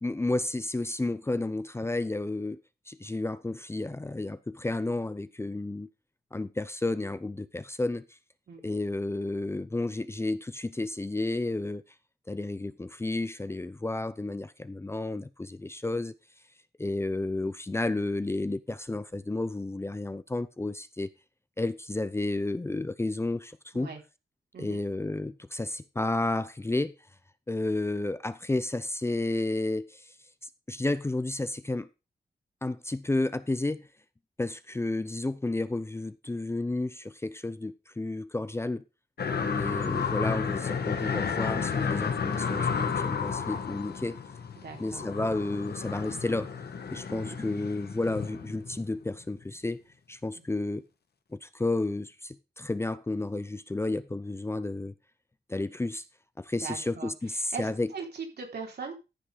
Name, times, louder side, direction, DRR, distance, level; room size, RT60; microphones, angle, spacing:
voice 1, 0.0-2.6 2.9-5.9 6.3-8.0 8.6-11.8 12.3-16.1 16.8-21.1 21.6-23.9 24.6-26.9 27.5-30.1 30.7-31.9 32.6-33.9 34.4-38.8 39.4-44.2 44.8-46.5 46.9-49.8 50.1-50.8 51.3-54.9 55.5-56.0 56.4-57.9, left 2 dB, 15° left, 0.6 m, -31 dB
sound 1, 39.2-49.1 49.4-49.5, left 6 dB, 75° left, 1.7 m, -32 dB
voice 2, 44.6-45.0 47.1-47.4 50.3-50.4 56.6-59.0, right 5 dB, 75° right, 3.9 m, -40 dB
14.0 x 5.9 x 5.0 m
wide cardioid pair, 160°, 17 cm